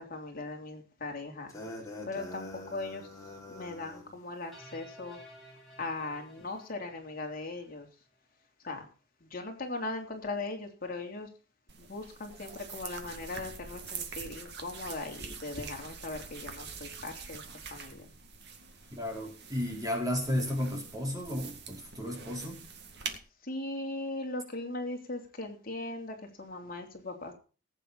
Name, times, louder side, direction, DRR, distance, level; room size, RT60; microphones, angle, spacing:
voice 1, 0.0-1.5 2.1-3.1 3.5-5.2 5.8-7.9 8.6-8.8 9.3-11.3 11.8-17.4 17.7-18.1 23.4-27.3, left 2 dB, 45° left, 2 dB, 3.4 m, -39 dB
sound 1, 1.5-4.1, left 2 dB, 15° left, 5.2 m, -44 dB
sound 2, 4.5-7.8, equal, ahead, 7.9 m, -54 dB
sound 3, 11.7-23.2, right 5 dB, 55° right, 2.2 m, -45 dB
voice 2, 18.9-22.6, left 1 dB, 20° right, 2 dB, 4.1 m, -33 dB
19.0 x 9.0 x 4.1 m, 0.37 s
head